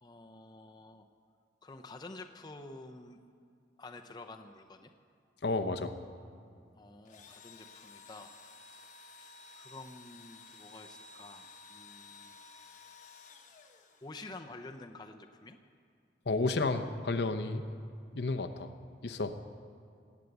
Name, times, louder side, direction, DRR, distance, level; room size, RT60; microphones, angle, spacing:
voice 1, 0.0-1.0 1.6-3.2 3.8-4.9 6.8-8.3 9.2-12.4 14.0-15.6, left 2 dB, 25° left, 4 dB, 0.7 m, -49 dB
voice 2, 5.4-5.9 16.3-17.6 18.1-18.7 19.0-19.4, left 3 dB, 65° left, 9 dB, 0.8 m, -31 dB
Engine / Drill, 7.0-14.4, left 3 dB, 45° left, 1.0 m, -54 dB
19.0 x 8.4 x 8.0 m, 2.4 s
head